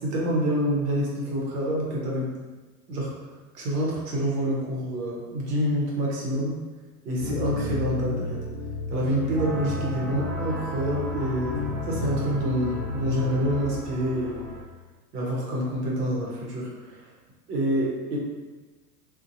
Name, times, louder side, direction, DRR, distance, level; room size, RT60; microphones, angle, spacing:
voice 1, 0.0-2.3 2.9-3.1 3.5-6.6 7.0-8.4 8.9-11.5 11.9-14.5 15.1-17.1 17.5-18.2, equal, 70° right, -3 dB, 1.1 m, -27 dB
sound 1, 7.2-13.7, left 2 dB, 15° left, 0.9 m, -32 dB
sound 2, 9.4-14.6, right 2 dB, 35° right, 0.6 m, -38 dB
2.6 x 2.4 x 2.6 m, 1.3 s
hypercardioid pair, 105°, 49 cm